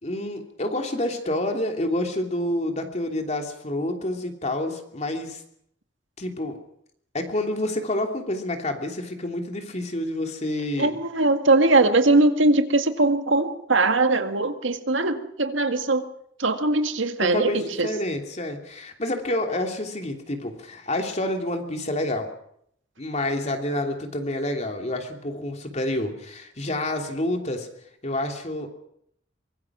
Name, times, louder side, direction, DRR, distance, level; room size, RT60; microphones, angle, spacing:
voice 1, 0.0-5.4 6.2-6.6 7.1-11.0 17.2-22.3 23.0-27.7 28.0-28.7, left 1 dB, 35° left, 4 dB, 3.1 m, -28 dB
voice 2, 10.8-16.0 16.4-17.9, right 2 dB, 85° right, 7 dB, 1.9 m, -21 dB
24.0 x 22.0 x 6.2 m, 0.70 s
head